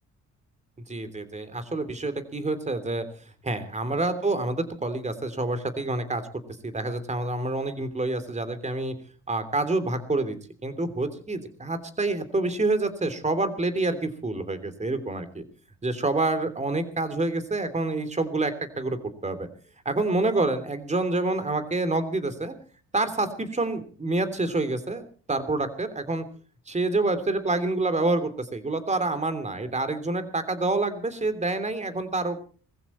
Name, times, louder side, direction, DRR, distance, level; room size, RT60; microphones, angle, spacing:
voice 1, 0.9-3.0 3.4-6.2 6.6-8.9 9.3-10.4 10.6-15.4 15.8-19.5 19.8-22.5 22.9-25.0 25.3-26.2 26.7-32.4, right 2 dB, 25° right, 11 dB, 3.1 m, -27 dB
20.0 x 15.0 x 4.4 m, 0.40 s
cardioid pair, 90°, 30 cm